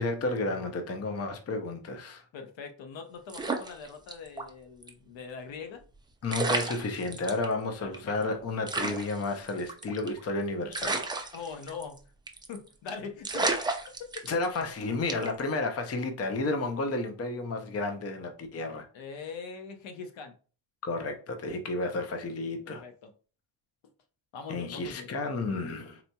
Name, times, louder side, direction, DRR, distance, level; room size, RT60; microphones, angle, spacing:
voice 1, 0.0-2.2 6.2-11.0 14.3-18.9 20.8-22.8 24.5-26.0, left 2 dB, 30° left, 0.6 m, -32 dB
voice 2, 2.3-5.8 7.8-8.4 11.3-12.0 12.5-13.5 18.9-20.4 22.6-23.1 24.3-25.1, left 5 dB, 65° left, 0.8 m, -42 dB
sound 1, 3.3-4.5 4.8-4.9 5.9-6.0 6.3-7.4 7.9-8.0 8.2-8.3 8.7-10.2 10.7-12.0 12.3-12.6 12.9-13.0 13.2-14.6 15.1-15.4, right 3 dB, 10° right, 0.4 m, -32 dB
4.1 x 2.8 x 2.3 m
cardioid pair, 105°, 49 cm